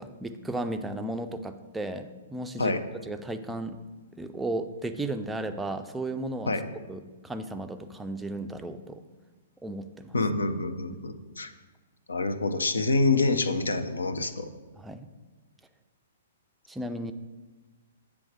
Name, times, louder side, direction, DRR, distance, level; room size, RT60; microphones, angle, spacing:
voice 1, 0.0-2.8 3.1-3.8 4.1-6.6 6.9-9.0 9.6-10.1 14.8-15.1 16.7-17.1, right 2 dB, 5° right, 7 dB, 0.4 m, -34 dB
voice 2, 10.1-11.5 12.1-14.5, left 3 dB, 75° left, 9 dB, 0.5 m, -27 dB
7.6 x 3.5 x 5.0 m, 1.2 s
figure-of-eight pair, 115°, 0 cm